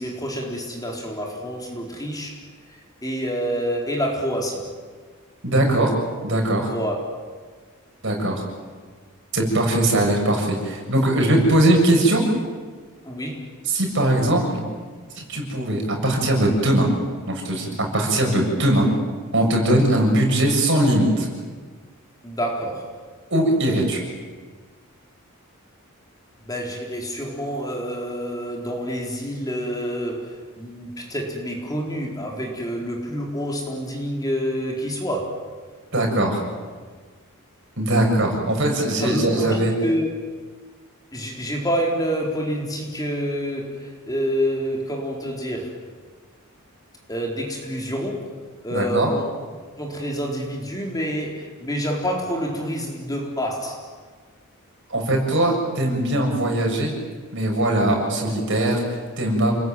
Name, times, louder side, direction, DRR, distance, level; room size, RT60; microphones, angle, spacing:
voice 1, 0.0-2.4 3.0-4.7 6.7-7.0 13.0-13.5 22.2-22.9 26.4-35.4 39.0-40.1 41.1-45.8 47.1-48.3 48.6-49.3 49.8-53.9, equal, 15° left, 0 dB, 4.1 m, -27 dB
voice 2, 5.4-5.9 6.2-6.7 8.0-8.4 9.3-12.3 13.7-14.7 15.2-16.9 17.3-18.9 19.3-21.3 23.3-24.0 35.9-36.4 37.8-39.7 48.7-49.1 54.9-57.0 57.3-58.8 59.2-59.5, right 1 dB, 55° right, 1 dB, 7.3 m, -20 dB
29.5 x 21.0 x 9.3 m, 1.5 s
head